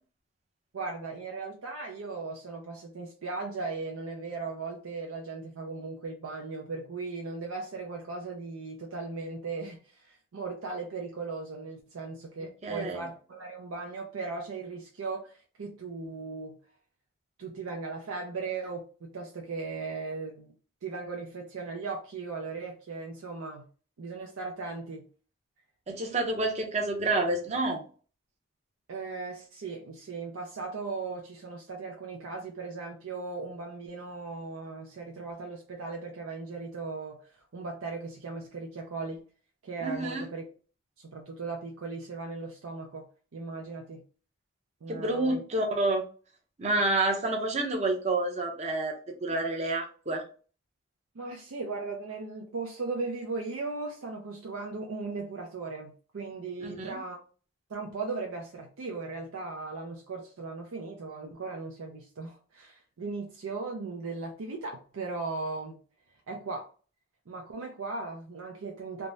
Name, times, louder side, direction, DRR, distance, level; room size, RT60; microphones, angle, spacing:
voice 1, 0.7-16.6 17.4-20.5 20.8-23.7 24.0-25.1 28.9-39.2 39.6-40.4 41.0-43.1 43.3-44.0 44.8-45.4 51.1-57.2 57.7-65.8 66.3-66.7 67.3-69.1, right 3 dB, 80° right, 1 dB, 0.5 m, -37 dB
voice 2, 12.6-13.0 25.9-27.8 39.8-40.3 44.9-46.0 46.6-50.2 56.6-57.0, right 2 dB, 30° right, 2 dB, 0.6 m, -29 dB
3.4 x 2.0 x 2.6 m, 0.38 s
head